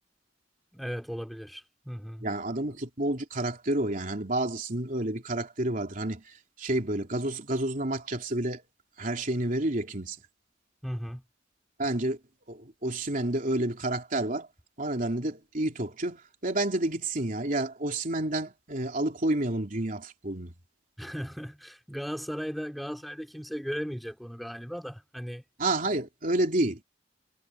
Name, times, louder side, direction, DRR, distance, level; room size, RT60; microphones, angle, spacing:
voice 1, 0.7-2.3 10.8-11.2 21.0-25.4, equal, ahead, 3.7 m, -36 dB
voice 2, 2.2-8.6 9.0-10.2 11.8-12.2 12.5-14.5 14.8-20.5 25.6-26.8, right 1 dB, 45° right, 3.4 m, -29 dB
head